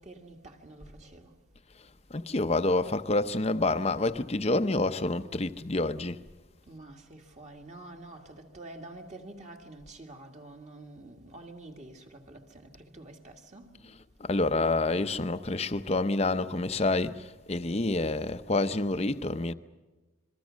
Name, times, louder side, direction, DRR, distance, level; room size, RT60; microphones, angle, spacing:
voice 1, 0.0-1.4 6.7-13.7 14.6-14.7, right 2 dB, 35° right, 2.0 m, -47 dB
voice 2, 2.1-6.2 14.2-19.5, left 2 dB, 30° left, 0.7 m, -28 dB
27.0 x 22.5 x 6.3 m
head